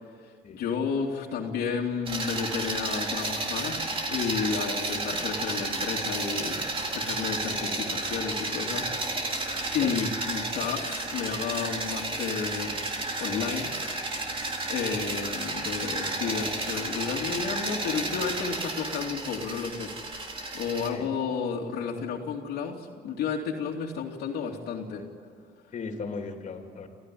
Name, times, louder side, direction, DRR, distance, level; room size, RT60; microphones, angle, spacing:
voice 1, 0.2-6.6 6.9-12.9 13.2-13.7 14.7-25.1, left 6 dB, 70° left, -1 dB, 2.8 m, -32 dB
sound 1, 2.1-20.9, right 2 dB, 30° right, 4.0 m, -32 dB
voice 2, 25.7-26.9, left 4 dB, 45° left, 4 dB, 3.3 m, -37 dB
28.5 x 15.0 x 10.0 m, 2.2 s
cardioid pair, 110°, 17 cm